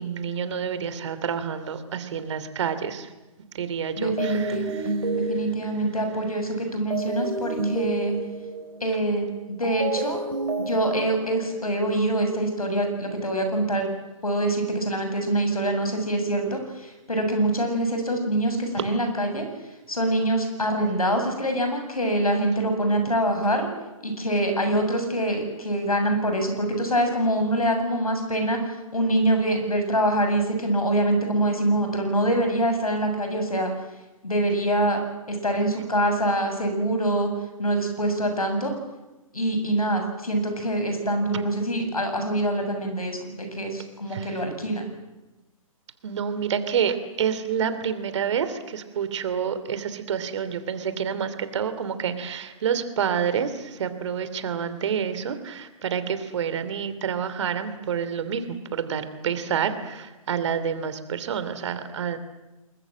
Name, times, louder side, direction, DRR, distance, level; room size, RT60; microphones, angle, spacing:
voice 1, 0.0-3.1 3.5-4.9 18.8-18.9 41.3-41.4 44.1-44.4 46.0-62.2, right 7 dB, 55° right, 11 dB, 3.1 m, -28 dB
voice 2, 4.0-4.7 5.1-8.1 8.8-10.2 10.6-13.9 14.2-19.4 19.9-23.7 24.0-28.6 28.9-33.7 34.2-35.0 35.3-37.3 37.6-38.7 39.3-44.9, right 1 dB, 90° left, 5 dB, 7.7 m, -25 dB
sound 1, 4.2-11.8, right 2 dB, 80° right, 5.7 m, -31 dB
29.0 x 21.0 x 7.6 m, 1.1 s
figure-of-eight pair, 130°, 18 cm